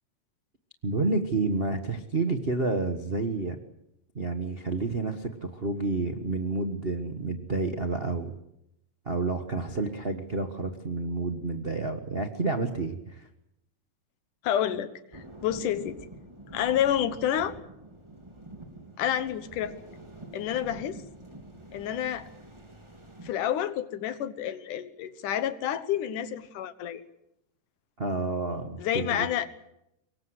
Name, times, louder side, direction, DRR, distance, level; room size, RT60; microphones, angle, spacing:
voice 1, 0.8-3.6 4.1-8.3 9.0-13.3 28.0-29.3, right 3 dB, 70° right, 5 dB, 0.5 m, -29 dB
voice 2, 14.4-16.0 16.5-17.6 19.0-19.7 20.3-21.0 21.7-22.3 23.2-27.0 28.8-29.5, left 10 dB, 75° left, 12 dB, 2.7 m, -29 dB
sound 1, 15.1-23.3, right 1 dB, 10° right, 2.6 m, -46 dB
25.0 x 22.5 x 8.0 m, 0.83 s
omnidirectional pair, 3.8 m